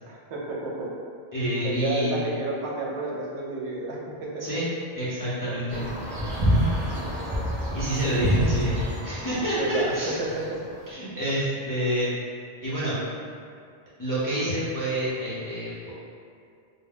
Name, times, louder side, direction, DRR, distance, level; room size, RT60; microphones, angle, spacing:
voice 1, 0.1-0.9 1.6-4.4 5.4-5.6 8.1-8.3 9.5-10.6, right 2 dB, 90° right, -3 dB, 0.9 m, -31 dB
voice 2, 1.3-2.2 4.4-4.7 5.0-5.8 7.7-8.8 9.0-10.2 10.9-12.1 12.6-12.9 14.0-15.9, right 1 dB, 30° left, -12 dB, 0.4 m, -28 dB
sound 1, 5.7-10.8, equal, 40° right, 0.3 m, -27 dB
2.2 x 2.1 x 3.4 m, 2.4 s
omnidirectional pair, 1.1 m